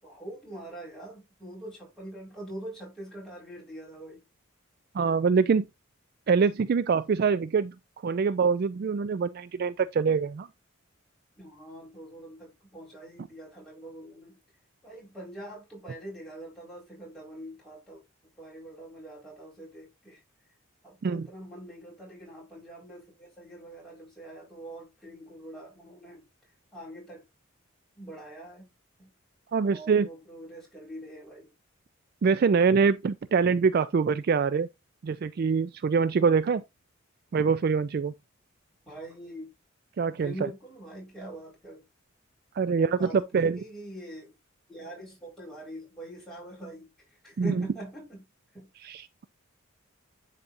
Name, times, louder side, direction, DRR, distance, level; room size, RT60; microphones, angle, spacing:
voice 1, 0.0-4.2 11.4-14.4 14.8-18.0 18.4-20.2 20.8-26.2 26.7-27.2 28.0-28.7 29.0-29.1 29.7-31.5 38.9-39.5 40.0-41.8 42.7-44.3 44.7-46.9 47.2-48.3 48.5-48.7, right 1 dB, 5° left, 4.4 m, -43 dB
voice 2, 4.9-5.7 6.3-7.7 8.0-10.5 21.0-21.3 29.5-30.1 32.2-34.7 35.0-36.6 37.3-38.1 40.0-40.5 42.6-43.6 47.4-47.6 48.8-49.2, right 5 dB, 45° right, 0.3 m, -24 dB
10.5 x 4.2 x 2.5 m
head